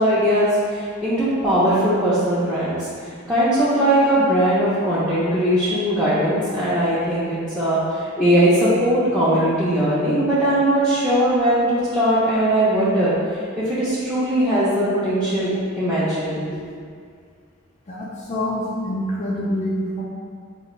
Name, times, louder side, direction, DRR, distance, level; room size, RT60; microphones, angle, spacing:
voice 1, 0.0-2.8 3.3-13.1 13.6-15.5 15.7-16.6, right 1 dB, 5° right, -13 dB, 0.7 m, -19 dB
voice 2, 17.9-20.0, left 1 dB, 35° left, -5 dB, 0.4 m, -26 dB
4.8 x 2.5 x 3.1 m, 2.1 s
head